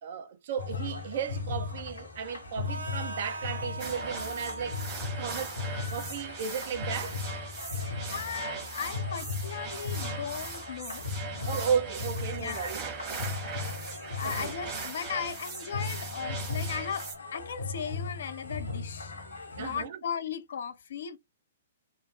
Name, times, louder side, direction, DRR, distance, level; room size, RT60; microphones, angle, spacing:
voice 1, 0.0-4.8 5.2-5.6 5.9-7.2 11.5-12.9 14.2-14.5 19.6-20.0, right 7 dB, 50° right, 0.7 m, -34 dB
sound 1, 0.6-19.9, left 4 dB, 80° left, 1.2 m, -37 dB
Harmonica, 2.7-10.6, right 2 dB, 90° right, 1.5 m, -45 dB
sound 2, 3.8-17.2, right 5 dB, 25° right, 1.2 m, -40 dB
voice 2, 8.1-11.1 11.4-11.8 12.4-12.7 14.1-21.2, left 7 dB, 60° left, 0.5 m, -37 dB
3.0 x 2.0 x 3.9 m
figure-of-eight pair, 115°, 0 cm